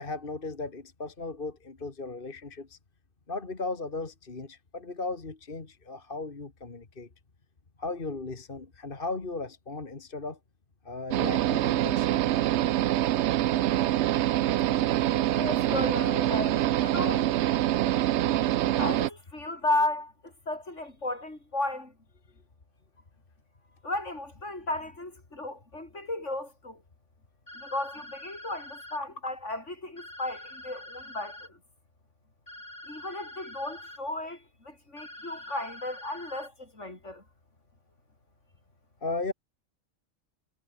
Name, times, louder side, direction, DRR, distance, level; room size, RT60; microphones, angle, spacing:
voice 1, 0.0-2.8 3.3-7.1 7.8-10.4 10.8-12.3 39.0-39.3, left 3 dB, 45° left, 2.2 m, -36 dB
sound 1, 11.1-19.1, right 13 dB, 70° right, 0.8 m, -25 dB
voice 2, 15.3-17.3 18.8-21.9 23.8-26.8 27.5-31.6 32.9-37.2, left 2 dB, 70° left, 6.4 m, -34 dB
sound 2, 27.5-29.0 30.0-31.5 32.5-34.0 35.0-36.5, left 1 dB, 25° left, 5.0 m, -45 dB
omnidirectional pair, 1.3 m